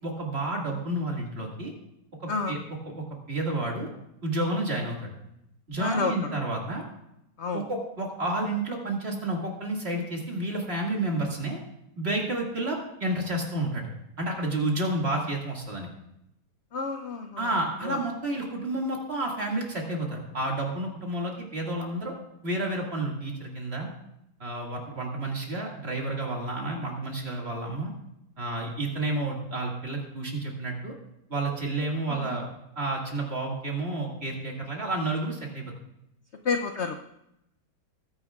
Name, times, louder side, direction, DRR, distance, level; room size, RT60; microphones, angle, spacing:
voice 1, 0.0-1.7 2.2-2.6 2.9-3.0 3.3-3.9 4.2-5.1 5.7-6.8 7.5-11.6 12.0-13.9 14.2-15.9 17.4-22.1 22.4-23.9 24.4-27.9 28.4-30.9 31.3-32.4 32.8-35.7, right 2 dB, 35° right, -1 dB, 2.3 m, -30 dB
voice 2, 2.3-2.6 5.8-6.4 7.4-7.7 16.7-17.5 17.8-18.0 32.1-32.4 36.4-36.9, left 4 dB, 60° left, 6 dB, 0.7 m, -30 dB
20.5 x 9.8 x 2.4 m, 0.83 s
omnidirectional pair, 1.9 m